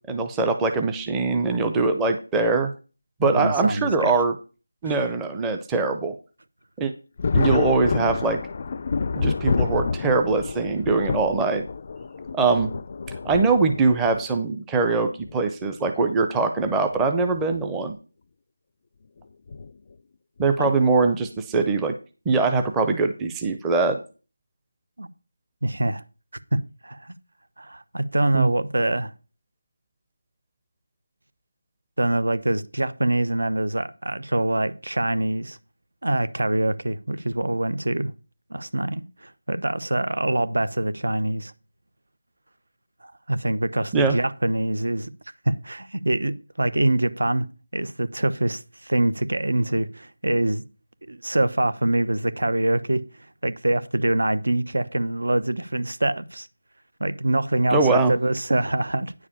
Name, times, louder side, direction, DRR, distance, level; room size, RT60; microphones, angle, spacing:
voice 1, 0.1-2.7 3.2-4.4 4.8-6.1 6.8-6.9 7.3-8.4 9.1-11.6 12.3-12.7 13.2-18.0 20.4-21.9 22.3-24.0 28.3-28.5 43.9-44.2 57.7-58.1, right 3 dB, 10° right, 0.6 m, -22 dB
voice 2, 3.2-4.1 4.9-5.0 20.6-20.8 25.0-25.1 25.6-26.0 26.5-27.1 27.6-29.1 32.0-35.6 36.0-38.1 38.5-41.5 43.0-45.1 45.4-47.5 47.7-50.6 51.1-53.0 53.4-56.5 57.0-59.1, right 1 dB, 75° right, 0.9 m, -24 dB
Thunder, 7.2-14.2 15.2-15.3 16.8-17.1 17.4-17.5 19.5-19.7 20.4-20.7, left 4 dB, 35° left, 0.4 m, -28 dB
9.6 x 4.9 x 7.1 m
figure-of-eight pair, 170°, 0 cm